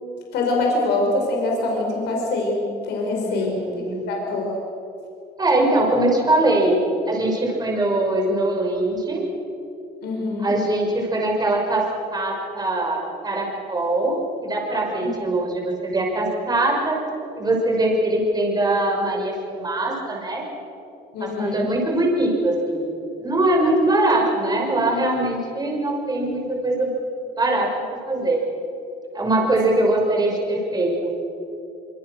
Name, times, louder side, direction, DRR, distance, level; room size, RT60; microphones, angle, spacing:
voice 1, 0.3-3.6 4.1-4.6 10.0-10.5 21.1-21.7, left 2 dB, 75° left, 0 dB, 5.1 m, -24 dB
voice 2, 3.2-4.0 5.4-6.8 7.1-9.2 10.4-11.9 12.1-17.0 17.4-20.4 21.2-22.9 23.2-26.9 27.4-27.7 28.1-28.4 29.1-31.1, right 1 dB, 25° right, 0 dB, 5.9 m, -22 dB
25.5 x 25.0 x 6.5 m, 2.8 s
cardioid pair, 110°, 17 cm